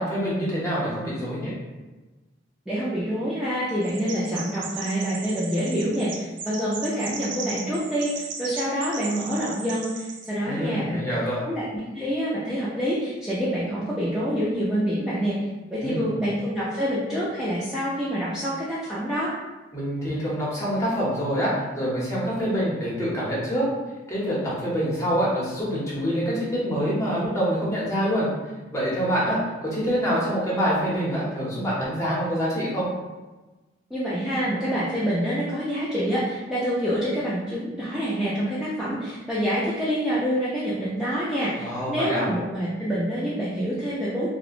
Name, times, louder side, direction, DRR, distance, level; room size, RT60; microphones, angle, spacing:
voice 1, 0.0-1.5 10.4-11.4 15.8-16.1 19.7-23.7 24.1-28.3 28.7-32.9 41.6-42.3, equal, 15° left, -7 dB, 0.7 m, -26 dB
voice 2, 2.7-11.0 11.5-15.4 15.7-19.3 33.9-44.3, equal, 5° right, -11 dB, 0.3 m, -27 dB
Chirp tweet, 3.8-10.3, right 5 dB, 80° right, 0.4 m, -37 dB
2.7 x 2.1 x 2.4 m, 1.2 s
head